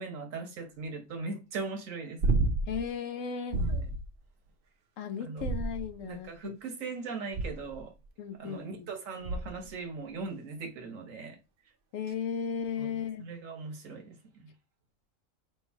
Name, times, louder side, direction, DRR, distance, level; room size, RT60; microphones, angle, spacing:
voice 1, 0.0-2.3 3.6-3.9 5.2-5.4 6.0-7.9 8.4-11.4 12.8-14.2, right 4 dB, 80° right, 1.4 m, -39 dB
sound 1, 2.2-2.9 3.5-4.0 5.4-6.1 7.3-7.8 9.2-9.7 12.1-12.2, right 2 dB, 55° right, 0.7 m, -30 dB
voice 2, 2.7-3.6 5.0-6.6 8.2-8.9 11.9-13.2, left 6 dB, 75° left, 1.0 m, -35 dB
3.2 x 3.1 x 4.5 m
omnidirectional pair, 1.4 m